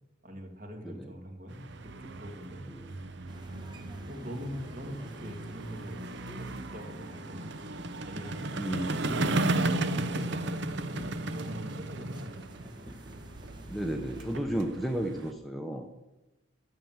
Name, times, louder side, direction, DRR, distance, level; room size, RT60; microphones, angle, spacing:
voice 1, 0.2-2.6 4.1-6.0 6.4-7.5 8.0-8.5 9.0-12.4 14.2-14.5, equal, 40° right, 3 dB, 2.1 m, -42 dB
sound 1, 1.5-15.3, right 2 dB, 55° right, 0.7 m, -35 dB
sound 2, 3.3-14.3, equal, 20° right, 1.1 m, -50 dB
voice 2, 8.6-9.0 9.7-9.8 13.7-16.0, right 1 dB, ahead, 3 dB, 0.8 m, -33 dB
12.5 x 7.5 x 7.3 m, 1.0 s
head